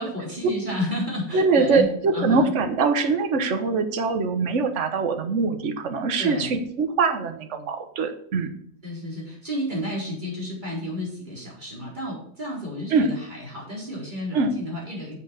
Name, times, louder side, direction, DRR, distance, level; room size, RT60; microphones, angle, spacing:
voice 1, 0.0-2.5 6.2-6.6 8.8-15.2, left 1 dB, 30° right, -4 dB, 4.4 m, -32 dB
voice 2, 1.3-8.5 12.9-13.1 14.3-14.5, right 4 dB, 50° right, 7 dB, 1.4 m, -23 dB
7.7 x 6.9 x 6.4 m, 0.67 s
omnidirectional pair, 1.7 m